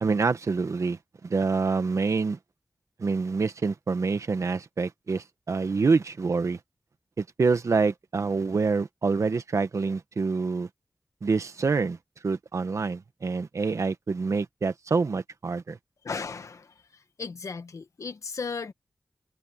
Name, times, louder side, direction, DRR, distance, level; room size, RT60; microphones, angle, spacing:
voice 1, 0.0-2.4 3.0-6.6 7.2-10.7 11.2-12.0 12.2-15.8, right 4 dB, 70° right, 1.4 m, -26 dB
voice 2, 16.0-16.7 17.2-18.7, left 5 dB, 80° left, 1.6 m, -35 dB
wide cardioid pair, 80°, 5 cm